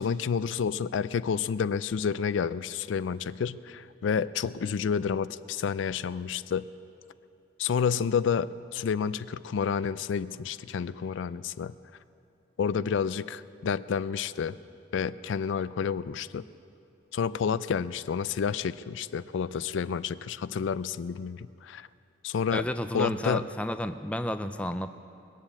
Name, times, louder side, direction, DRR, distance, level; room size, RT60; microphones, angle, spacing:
voice 1, 0.0-6.7 7.6-11.7 12.6-14.6 14.9-16.4 17.1-21.9 22.2-22.6 22.9-23.5, left 6 dB, 75° left, 15 dB, 0.4 m, -29 dB
voice 2, 22.5-25.0, left 1 dB, 5° left, 9 dB, 0.4 m, -31 dB
21.0 x 7.3 x 8.6 m, 2.6 s
head